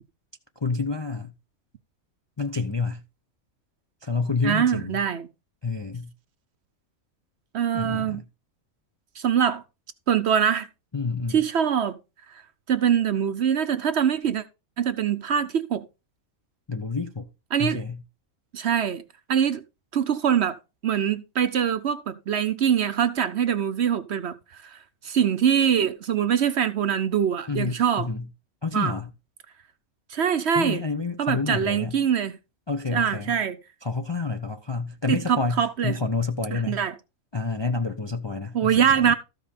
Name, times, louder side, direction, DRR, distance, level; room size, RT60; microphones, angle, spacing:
voice 1, 0.6-1.3 2.4-3.0 4.0-5.0 5.6-6.1 7.7-8.2 10.9-11.4 16.7-17.3 17.6-18.0 27.5-28.2 28.6-29.1 30.6-31.9 32.7-33.3 33.8-36.8 37.3-39.1, left 4 dB, 30° left, 0.5 m, -29 dB
voice 2, 4.4-5.3 7.5-8.2 9.2-9.6 10.1-10.7 11.3-12.0 12.3-12.4 12.7-14.4 14.8-15.8 17.5-17.8 18.5-19.0 19.3-19.6 19.9-20.6 20.8-28.1 28.7-28.9 30.1-30.8 31.2-32.4 32.9-33.6 35.1-36.0 36.5-37.0 38.5-39.1, right 8 dB, 60° right, 0.9 m, -23 dB
13.5 x 5.4 x 4.2 m
omnidirectional pair, 1.5 m